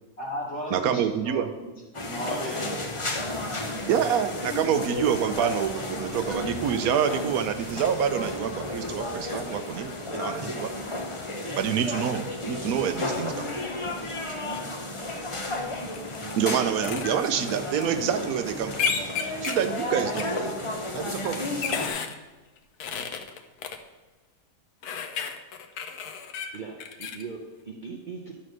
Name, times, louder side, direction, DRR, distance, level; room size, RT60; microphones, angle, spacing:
voice 1, 0.2-1.7 2.0-2.8, left 1 dB, 45° left, -5 dB, 3.0 m, -34 dB
voice 2, 0.7-1.5 3.9-10.7 11.6-13.6 16.4-18.8 19.4-21.5, right 8 dB, 70° right, 9 dB, 1.0 m, -27 dB
sound 1, 1.9-21.9, left 2 dB, 25° left, 0.7 m, -33 dB
sound 2, 15.9-16.3 16.8-17.1 18.7-19.7 20.2-20.3 21.2-22.1 22.8-23.8 24.8-27.2, left 6 dB, 80° left, 1.2 m, -31 dB
voice 3, 26.5-28.4, right 5 dB, 40° right, -1 dB, 0.8 m, -39 dB
10.5 x 4.2 x 6.3 m, 1.2 s
omnidirectional pair, 1.7 m